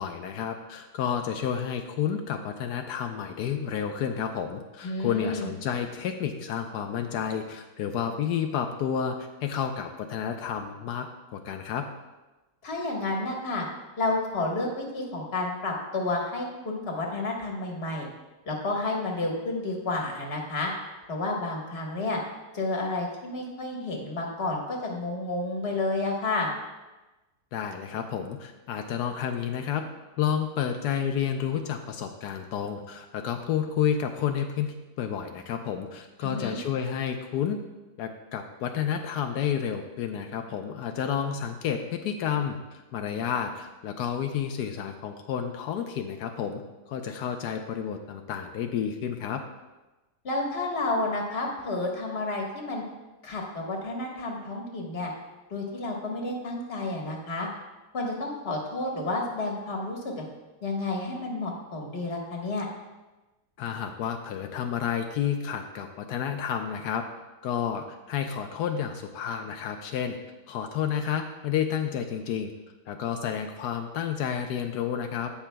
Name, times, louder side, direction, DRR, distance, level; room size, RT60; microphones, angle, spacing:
voice 1, 0.0-11.1 11.3-11.9 27.5-29.8 30.2-37.6 38.0-46.6 46.9-49.4 63.6-67.0 67.4-70.2 70.5-72.5 72.9-75.3, left 8 dB, 90° left, 5 dB, 1.2 m, -30 dB
voice 2, 4.8-5.5 12.6-13.6 14.0-18.1 18.5-20.7 21.1-22.2 22.5-26.5 36.2-36.6 50.2-52.8 53.2-55.1 55.5-57.5 57.9-60.2 60.6-62.7, left 2 dB, 40° left, 0 dB, 1.6 m, -30 dB
17.0 x 5.8 x 2.3 m, 1.1 s
omnidirectional pair, 1.7 m